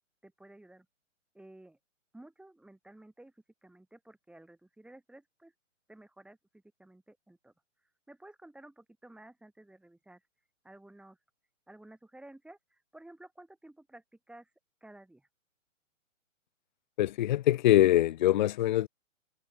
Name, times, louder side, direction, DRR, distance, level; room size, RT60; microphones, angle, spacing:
voice 1, 0.2-0.9 1.3-1.8 2.1-3.3 3.6-5.5 5.9-7.5 8.1-10.2 10.6-11.2 11.7-14.5 14.8-15.3, right 1 dB, ahead, 6.5 m, -54 dB
voice 2, 17.0-18.9, left 13 dB, 35° left, 0.6 m, -23 dB
hypercardioid pair, 135°, 39 cm